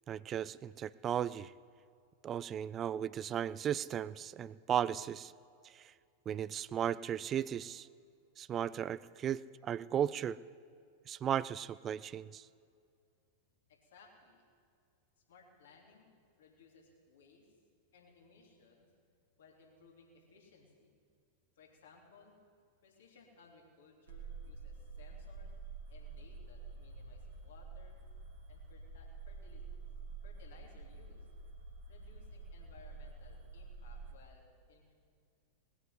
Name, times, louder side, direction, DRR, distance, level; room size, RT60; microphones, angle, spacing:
voice 1, 0.1-1.5 2.2-5.3 5.6-5.9 6.3-7.9 8.4-10.4 11.1-12.5, right 9 dB, 25° right, 19 dB, 0.4 m, -36 dB
voice 2, 13.7-14.4 15.3-16.1 16.4-17.6 17.9-18.9 19.4-20.9 21.5-22.4 22.8-25.5 25.9-27.9 28.5-30.0 30.2-31.3 31.9-34.9, left 4 dB, 60° left, 0 dB, 3.2 m, -62 dB
sound 1, 24.1-34.1, right 4 dB, 65° right, 2.2 m, -48 dB
19.5 x 9.4 x 7.8 m, 2.3 s
figure-of-eight pair, 90°, 0 cm